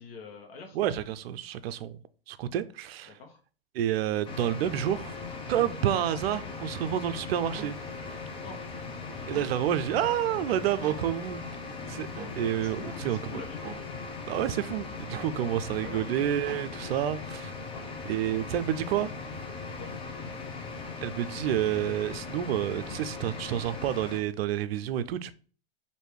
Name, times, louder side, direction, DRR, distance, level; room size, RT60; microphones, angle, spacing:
voice 1, 0.0-0.8 3.1-3.4 8.4-8.6 12.6-13.6 15.8-16.2 17.7-17.9 19.5-19.9, left 4 dB, 70° left, 1.1 m, -45 dB
voice 2, 0.7-2.0 2.3-3.2 3.7-5.2 5.5-7.8 9.3-11.4 11.9-12.1 12.3-13.4 14.3-17.6 18.1-19.1 21.0-25.3, right 11 dB, 75° right, 0.5 m, -29 dB
sound 1, 4.2-24.2, left 4 dB, 15° left, 0.6 m, -39 dB
sound 2, 5.5-5.7 7.5-7.7 9.3-9.5 10.8-11.0 12.2-12.4 13.6-13.8 15.1-15.4 16.5-16.7, right 5 dB, 25° right, 1.0 m, -43 dB
3.3 x 2.7 x 4.5 m
hypercardioid pair, 120°, 31 cm